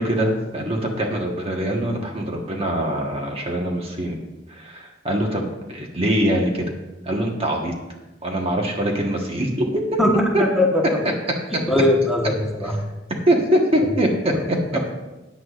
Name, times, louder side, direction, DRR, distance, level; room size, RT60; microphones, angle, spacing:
voice 1, 0.0-4.2 4.5-6.6 7.0-7.7 8.2-10.0 10.3-10.4 12.6-12.7 13.3-14.8, right 1 dB, 35° right, 1 dB, 1.3 m, -23 dB
voice 2, 10.4-10.8 11.7-12.7, left 1 dB, ahead, -1 dB, 1.3 m, -19 dB
14.5 x 9.4 x 2.5 m, 1.0 s
head